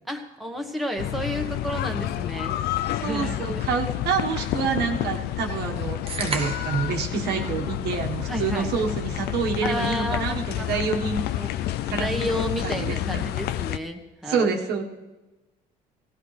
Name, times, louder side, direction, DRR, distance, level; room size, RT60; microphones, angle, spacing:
voice 1, 0.1-2.5 3.0-3.6 8.3-8.7 9.6-11.5 11.9-14.5, equal, ahead, 2 dB, 1.3 m, -31 dB
sound 1, 1.0-13.8, left 13 dB, 70° left, 0.4 m, -29 dB
voice 2, 3.0-11.6 11.9-13.3 14.2-14.8, right 5 dB, 75° right, 3 dB, 1.4 m, -28 dB
sound 2, 6.1-6.9, right 4 dB, 35° right, 1.2 m, -31 dB
17.0 x 15.5 x 3.3 m, 1.1 s
cardioid pair, 110°, 17 cm